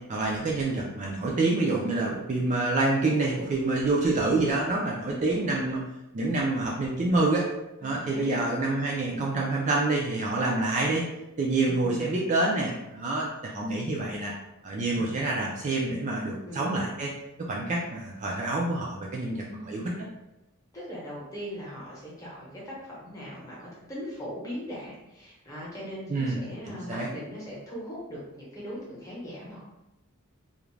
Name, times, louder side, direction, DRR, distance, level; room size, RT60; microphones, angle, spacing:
voice 1, 0.1-5.8 6.1-7.5 7.8-11.0 11.4-14.3 14.6-17.1 17.4-20.1 26.1-27.1, right 2 dB, 35° right, -3 dB, 0.3 m, -27 dB
voice 2, 7.8-8.4 11.6-12.3 14.9-15.1 16.4-16.7 19.4-19.9 20.7-29.6, equal, 15° left, -6 dB, 0.9 m, -40 dB
2.4 x 2.1 x 3.1 m, 0.94 s
head